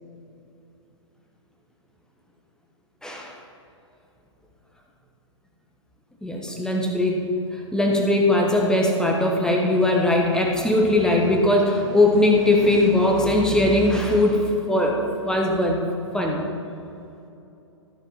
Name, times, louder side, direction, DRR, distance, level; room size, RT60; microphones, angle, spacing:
voice 1, 3.0-3.3 6.2-15.8 16.1-16.4, left 1 dB, 5° left, 0 dB, 1.1 m, -20 dB
13.0 x 5.3 x 5.8 m, 2.8 s
figure-of-eight pair, 115°, 16 cm